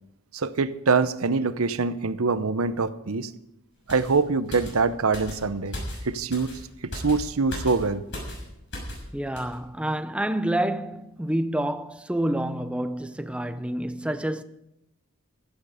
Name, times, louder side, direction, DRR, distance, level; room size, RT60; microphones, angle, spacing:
voice 1, 0.3-3.3 3.9-5.8 6.0-6.5 6.8-8.0, right 4 dB, 80° right, 0.9 m, -24 dB
sound 1, 3.9-9.1 9.4-9.6, equal, 60° left, 6.3 m, -37 dB
voice 2, 9.1-14.4, right 1 dB, 5° right, 0.7 m, -28 dB
16.0 x 12.5 x 5.0 m
head